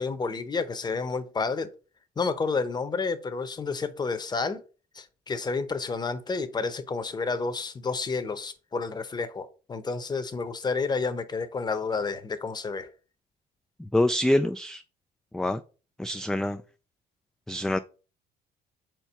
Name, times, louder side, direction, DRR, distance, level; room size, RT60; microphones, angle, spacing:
voice 1, 0.0-1.7 2.2-4.6 4.9-12.9, left 4 dB, 25° left, 0.9 m, -30 dB
voice 2, 13.9-14.8 15.3-15.6 16.0-16.6 17.5-17.8, left 1 dB, 5° left, 0.3 m, -25 dB
4.6 x 4.5 x 5.4 m
cardioid pair, 110°, 17 cm